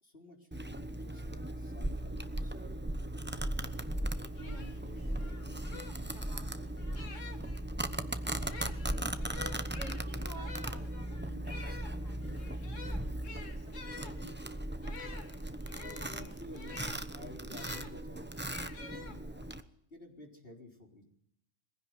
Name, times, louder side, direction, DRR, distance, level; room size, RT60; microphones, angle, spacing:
voice 1, 0.0-2.9 15.8-19.5 19.9-21.0, left 2 dB, 50° left, 2 dB, 4.3 m, -52 dB
Domestic sounds home sounds, 0.5-19.6, right 1 dB, 10° right, 0.9 m, -38 dB
voice 2, 4.2-9.2 9.9-14.4, right 2 dB, 35° right, 3 dB, 3.1 m, -55 dB
sound 1, 4.4-7.6 8.3-17.9 18.5-19.6, left 4 dB, 85° left, 2.3 m, -49 dB
22.0 x 16.0 x 9.6 m, 0.73 s
omnidirectional pair, 1.3 m